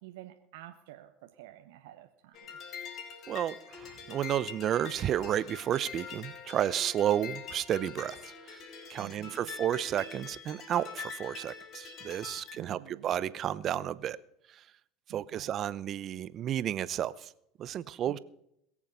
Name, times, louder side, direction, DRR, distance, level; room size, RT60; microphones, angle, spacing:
voice 1, 0.0-2.5 9.0-9.5 12.5-13.1 15.1-15.5 18.1-18.2, right 15 dB, 75° right, 6 dB, 1.1 m, -50 dB
sound 1, 2.3-12.6, left 6 dB, 50° left, 3.3 m, -44 dB
voice 2, 3.3-3.6 4.1-8.2 8.9-14.2 15.1-17.1 17.6-18.2, right 11 dB, 45° right, 17 dB, 0.7 m, -31 dB
22.0 x 7.3 x 5.5 m, 0.75 s
hypercardioid pair, 85°, 0 cm